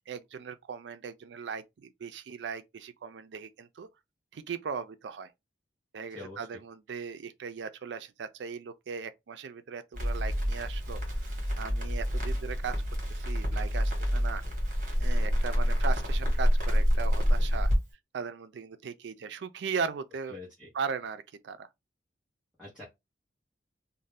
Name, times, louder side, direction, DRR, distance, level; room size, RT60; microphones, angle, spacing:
voice 1, 0.1-3.9 4.3-5.3 5.9-11.2 11.6-12.8 13.1-14.4 15.0-17.7 18.1-20.4 20.7-21.7, right 6 dB, 80° right, 0.4 m, -38 dB
voice 2, 6.1-6.6 20.3-20.7 22.6-22.8, left 2 dB, 5° right, 1.0 m, -45 dB
Crackle, 9.9-17.8, equal, 50° right, 1.3 m, -27 dB
2.6 x 2.1 x 3.3 m
head